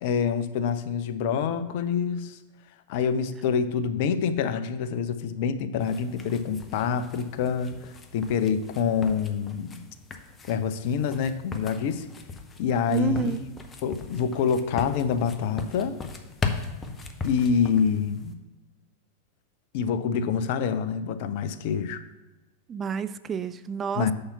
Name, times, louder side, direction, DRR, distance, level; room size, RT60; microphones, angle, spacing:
voice 1, 0.0-2.4 2.9-9.9 10.5-12.1 12.6-13.5 13.8-16.0 17.2-18.4 19.7-22.0 23.9-24.1, left 6 dB, 50° left, 10 dB, 0.6 m, -26 dB
sound 1, 5.8-18.3, left 4 dB, 20° left, 0.8 m, -38 dB
voice 2, 12.9-13.4 22.7-24.1, right 6 dB, 25° right, 13 dB, 0.3 m, -29 dB
6.6 x 5.6 x 5.5 m, 1.1 s
figure-of-eight pair, 90°, 0 cm